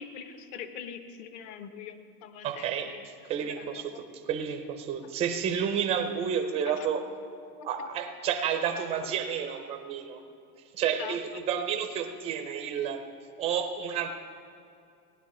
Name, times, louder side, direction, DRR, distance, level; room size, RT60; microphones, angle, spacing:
voice 1, 0.0-2.9 3.4-4.0 7.6-7.7 10.8-11.2, left 8 dB, 40° left, 9 dB, 0.8 m, -43 dB
voice 2, 2.4-7.0 7.6-10.2 10.7-13.0 13.4-14.1, right 8 dB, 15° right, 5 dB, 0.4 m, -31 dB
17.0 x 11.0 x 4.1 m, 2.5 s
supercardioid pair, 150°, 49 cm